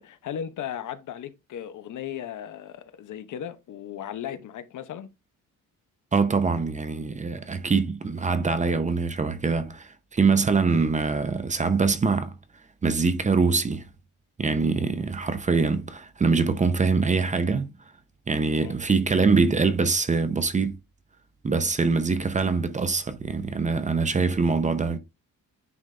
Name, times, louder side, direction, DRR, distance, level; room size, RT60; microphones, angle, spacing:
voice 1, 0.0-5.1 18.5-19.0, left 9 dB, 65° left, 0.9 m, -36 dB
voice 2, 6.1-12.3 12.8-13.9 14.4-17.7 18.3-20.8 21.4-25.0, right 4 dB, 20° right, 0.7 m, -24 dB
9.6 x 3.9 x 3.3 m
cardioid pair, 165°, 33 cm